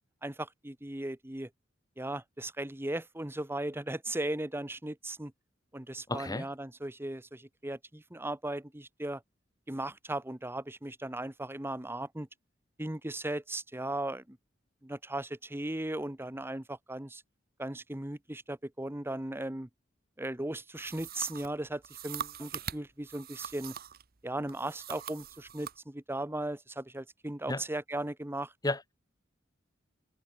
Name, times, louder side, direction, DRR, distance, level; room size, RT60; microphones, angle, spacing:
voice 1, 0.2-1.5 2.0-5.3 5.7-9.2 9.7-12.3 12.8-14.4 14.8-17.2 17.6-19.7 20.2-23.7 24.2-28.5, right 1 dB, 10° right, 1.2 m, -37 dB
voice 2, 6.1-6.5 27.5-27.6 28.6-28.9, left 2 dB, 20° left, 1.7 m, -32 dB
sound 1, 20.7-24.0 24.5-25.8, right 8 dB, 55° right, 1.1 m, -42 dB
head